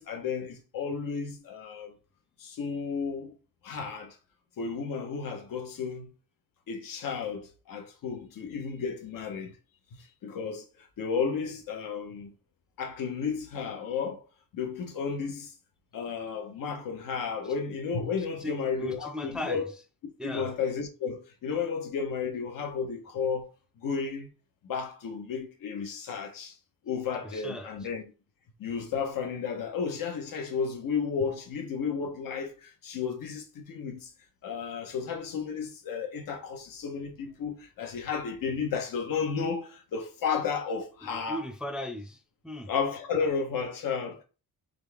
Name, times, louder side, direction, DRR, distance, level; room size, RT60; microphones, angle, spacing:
voice 1, 0.0-2.0 2.4-3.4 3.6-4.2 4.6-6.1 6.7-9.6 9.9-12.3 12.8-14.2 14.5-15.5 15.9-19.6 20.2-23.5 23.8-24.3 24.6-26.6 26.8-28.0 28.6-34.1 34.4-41.4 42.7-44.2, left 6 dB, 85° left, 1.0 m, -33 dB
voice 2, 18.4-19.7 20.2-20.5 27.2-27.7 41.0-42.7, left 1 dB, 5° right, 0.3 m, -37 dB
4.0 x 3.6 x 3.5 m
wide cardioid pair, 170°, 33 cm